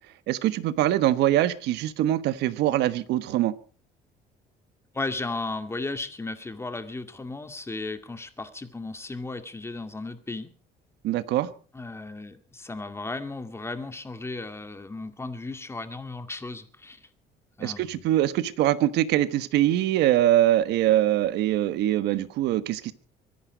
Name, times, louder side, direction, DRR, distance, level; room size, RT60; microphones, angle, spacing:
voice 1, 0.3-3.5 11.0-11.5 17.6-22.9, right 13 dB, 85° right, 1.3 m, -23 dB
voice 2, 4.9-10.5 11.7-17.0 17.6-18.1, left 3 dB, 15° left, 2.1 m, -35 dB
23.5 x 10.5 x 5.1 m
cardioid pair, 110°, 17 cm